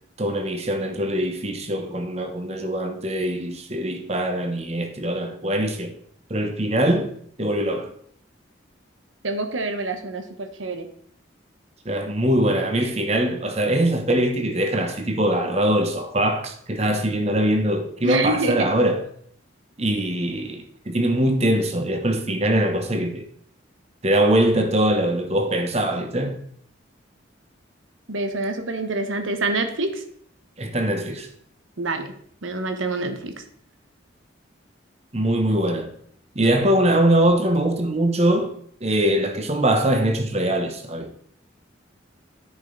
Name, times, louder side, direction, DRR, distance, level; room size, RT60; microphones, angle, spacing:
voice 1, 0.2-5.9 6.3-7.1 7.4-7.9 11.8-19.0 19.8-23.2 24.0-26.4 30.6-31.3 35.1-35.9 36.3-38.5 38.8-41.1, right 1 dB, 35° right, 1.0 m, -22 dB
voice 2, 9.2-10.9 18.0-18.7 28.1-30.0 31.8-32.1 32.4-33.3, right 2 dB, 85° right, 1.1 m, -26 dB
9.9 x 5.5 x 3.9 m
head